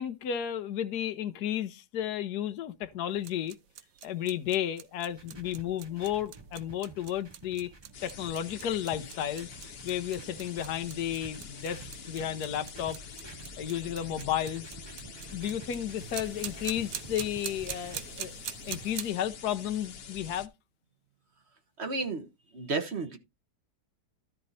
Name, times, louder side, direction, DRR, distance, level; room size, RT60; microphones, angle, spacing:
voice 1, 0.0-3.6 4.0-7.7 8.0-9.5 9.8-13.0 13.6-14.7 15.3-18.3 18.7-20.5, left 10 dB, 70° left, 1.3 m, -33 dB
sound 1, 3.1-19.1, right 10 dB, 65° right, 1.0 m, -44 dB
sound 2, 5.1-18.0, right 3 dB, 20° right, 0.7 m, -49 dB
sound 3, 7.9-20.5, left 7 dB, 45° left, 0.9 m, -47 dB
voice 2, 21.8-22.3 22.5-23.2, right 3 dB, 40° right, 1.5 m, -32 dB
13.0 x 4.5 x 4.1 m
omnidirectional pair, 1.8 m